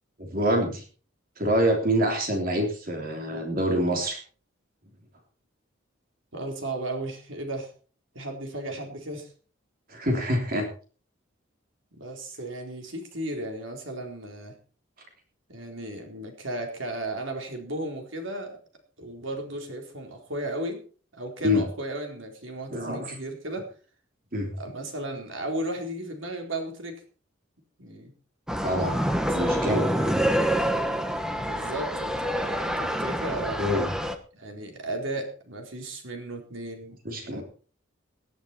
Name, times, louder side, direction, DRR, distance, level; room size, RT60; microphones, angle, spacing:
voice 1, 0.2-0.8 1.4-4.2 9.9-10.7 21.4-21.6 22.7-23.1 24.3-24.5 28.6-29.0 29.3-29.8 31.4-31.5 33.6-33.9 37.0-37.4, equal, 45° right, 3 dB, 3.3 m, -26 dB
voice 2, 6.3-7.7 8.1-9.3 12.0-14.5 15.5-18.6 19.0-20.8 21.1-23.7 24.6-27.0 27.8-28.1 29.2-30.2 31.4-33.6 34.3-37.0 37.3-37.4, right 1 dB, 65° right, 3 dB, 4.3 m, -35 dB
sound 1, 28.5-34.2, equal, 5° right, 1.1 m, -27 dB
18.0 x 11.0 x 4.5 m, 0.39 s
head